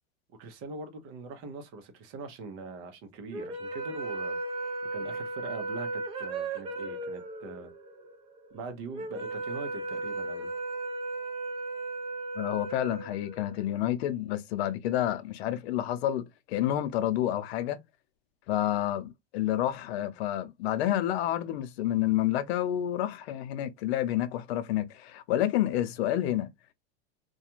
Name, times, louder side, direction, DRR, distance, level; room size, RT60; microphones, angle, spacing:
voice 1, 0.4-4.4 4.9-7.7 8.5-10.5, right 3 dB, 45° right, 0.8 m, -42 dB
sound 1, 3.3-13.7, right 2 dB, 20° right, 0.4 m, -36 dB
voice 2, 12.4-17.8 18.5-26.5, left 12 dB, 80° left, 0.6 m, -29 dB
2.4 x 2.2 x 2.8 m
supercardioid pair, 145°, 31 cm